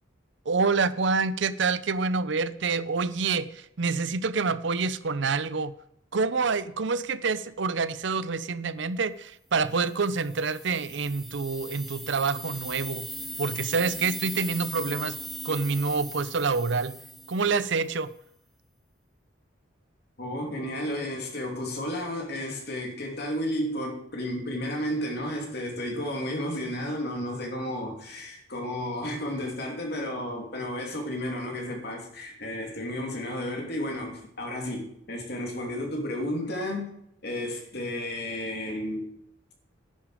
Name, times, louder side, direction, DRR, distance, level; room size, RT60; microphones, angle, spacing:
voice 1, 0.5-5.7 6.1-13.1 13.4-15.2 15.4-17.0 17.3-18.1, right 4 dB, 60° right, 0.6 m, -27 dB
sound 1, 10.0-17.9, equal, ahead, 1.0 m, -39 dB
voice 2, 20.2-36.9 37.2-39.1, left 1 dB, 50° left, 2.8 m, -32 dB
10.5 x 10.0 x 4.9 m
head